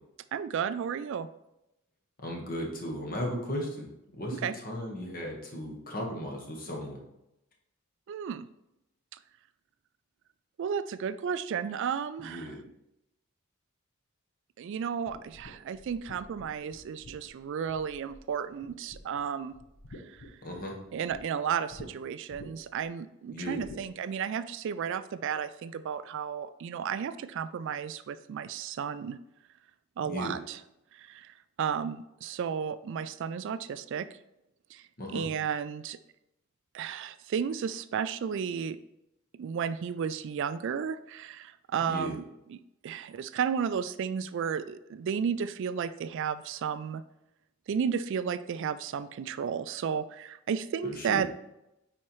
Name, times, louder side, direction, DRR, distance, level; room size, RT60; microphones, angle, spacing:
voice 1, 0.3-1.3 4.3-4.5 8.1-8.5 10.6-12.6 14.6-19.5 19.9-20.4 20.9-29.2 30.0-30.6 30.9-34.1 34.7-36.0 36.7-38.8 39.4-42.2 42.5-47.0 47.7-51.4, right 7 dB, 55° right, 14 dB, 0.3 m, -33 dB
voice 2, 2.2-7.0 12.2-12.6 20.4-20.8 23.3-23.6 30.0-30.4 35.0-35.2 41.8-42.2 50.8-51.3, equal, 40° left, 0 dB, 1.3 m, -36 dB
sound 1, 15.1-18.3 18.6-19.2 19.5-21.2 21.7-21.9 22.3-22.8 23.6-23.9, left 1 dB, 60° left, 0.9 m, -48 dB
9.3 x 4.3 x 3.0 m, 0.87 s
head